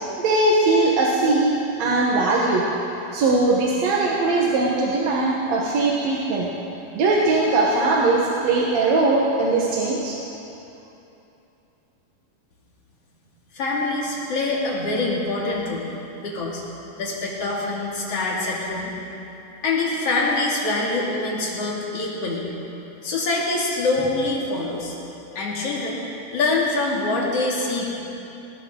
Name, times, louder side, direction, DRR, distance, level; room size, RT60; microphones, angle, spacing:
voice 1, 0.2-1.5 1.8-2.6 3.1-6.5 6.9-10.2, right 2 dB, 60° right, -3 dB, 2.0 m, -20 dB
voice 2, 13.5-15.9 16.2-16.6 17.0-18.9 19.6-22.5 23.0-24.9 25.3-26.0 26.3-27.9, left 2 dB, 45° left, -4 dB, 3.1 m, -24 dB
20.0 x 18.5 x 3.9 m, 2.9 s
omnidirectional pair, 4.4 m